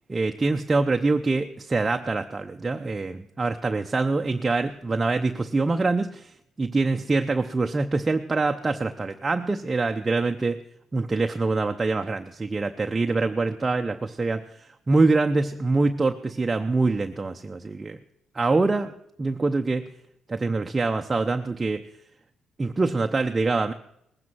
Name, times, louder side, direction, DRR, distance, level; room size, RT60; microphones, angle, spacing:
voice 1, 0.1-10.6 10.9-18.0 18.3-18.9 19.2-19.9 20.3-21.8 22.6-23.7, right 3 dB, 25° right, 5 dB, 0.7 m, -25 dB
19.5 x 9.4 x 6.1 m, 0.76 s
cardioid pair, 90°, 0 cm